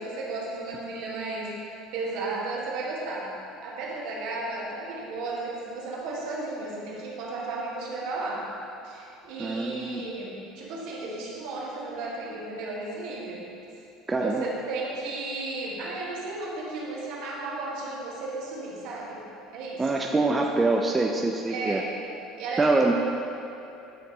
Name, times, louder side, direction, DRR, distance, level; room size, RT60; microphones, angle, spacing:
voice 1, 0.0-1.6 1.9-3.3 3.6-8.5 8.8-13.5 14.1-19.2 19.5-19.9 20.3-20.5 21.5-21.9 22.4-22.9, right 3 dB, 65° right, -4 dB, 1.5 m, -34 dB
voice 2, 9.4-10.0 14.1-14.5 19.8-21.8 22.6-22.9, right 3 dB, 20° right, 1 dB, 0.5 m, -24 dB
9.3 x 5.2 x 3.0 m, 2.7 s
hypercardioid pair, 65°, 0 cm